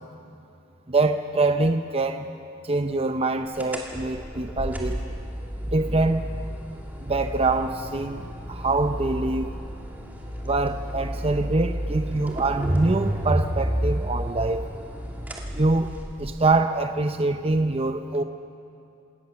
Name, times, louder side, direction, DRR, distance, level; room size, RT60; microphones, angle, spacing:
voice 1, 0.9-2.2 2.6-5.0 5.6-6.2 7.0-9.5 10.4-14.7 15.5-15.9 16.2-18.2, right 2 dB, 30° right, 7 dB, 0.7 m, -24 dB
sound 1, 3.6-16.4, equal, 10° right, 2.4 m, -31 dB
28.0 x 18.0 x 7.0 m, 2.6 s
head